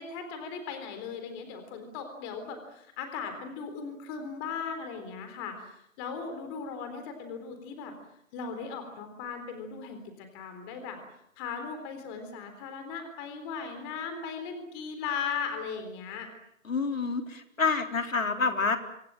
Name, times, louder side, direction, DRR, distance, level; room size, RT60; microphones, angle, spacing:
voice 1, 0.0-7.9 8.3-11.0 11.4-16.3, left 6 dB, 20° left, 7 dB, 3.8 m, -38 dB
voice 2, 16.7-18.8, left 4 dB, 75° left, 5 dB, 4.0 m, -28 dB
26.0 x 25.5 x 7.6 m, 0.74 s
hypercardioid pair, 160°, 40 cm